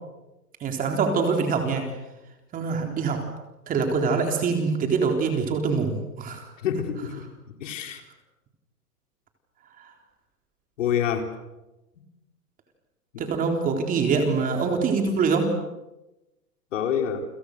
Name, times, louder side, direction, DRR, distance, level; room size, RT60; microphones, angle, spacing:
voice 1, 0.6-1.8 2.5-3.2 3.7-6.5 13.2-15.5, right 5 dB, 15° right, 4 dB, 3.9 m, -24 dB
voice 2, 6.6-7.2 7.6-8.0 10.8-11.3 16.7-17.2, left 8 dB, 50° left, 5 dB, 4.5 m, -26 dB
29.5 x 26.0 x 6.7 m, 0.98 s
hypercardioid pair, 145°, 47 cm